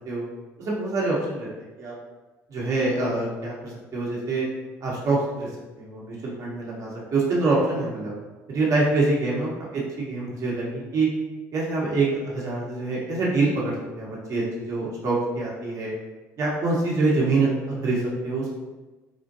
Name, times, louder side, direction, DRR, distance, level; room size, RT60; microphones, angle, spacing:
voice 1, 0.6-1.5 1.8-1.9 2.5-4.5 4.8-5.5 5.8-8.1 8.5-11.1 11.5-15.9 16.4-18.5, right 3 dB, 55° right, -5 dB, 1.2 m, -25 dB
4.2 x 2.5 x 2.7 m, 1.2 s
supercardioid pair, 75°, 7 cm